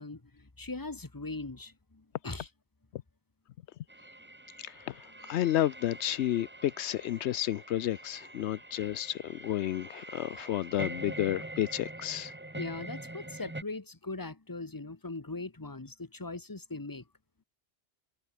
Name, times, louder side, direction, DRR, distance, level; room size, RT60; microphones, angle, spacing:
voice 1, 0.0-2.5 12.5-17.1, left 3 dB, 20° left, 1.4 m, -40 dB
sound 1, 3.9-13.6, right 2 dB, 10° right, 0.9 m, -44 dB
voice 2, 4.6-12.3, left 12 dB, 80° left, 0.9 m, -31 dB
omnidirectional pair, 1.1 m